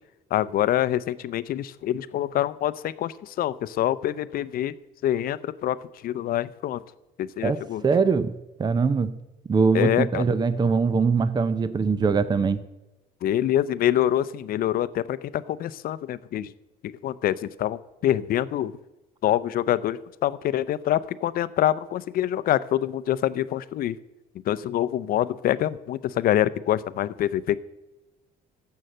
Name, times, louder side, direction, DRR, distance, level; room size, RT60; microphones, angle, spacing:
voice 1, 0.3-4.7 5.0-5.8 6.0-6.8 7.2-7.8 9.7-10.2 13.2-16.5 16.8-18.7 19.2-24.0 24.5-27.6, left 12 dB, 60° left, 16 dB, 0.6 m, -25 dB
voice 2, 7.8-8.3 8.6-9.2 9.5-12.6, right 5 dB, 25° right, 14 dB, 0.6 m, -22 dB
14.0 x 5.6 x 7.7 m, 1.0 s
cardioid pair, 110°, 17 cm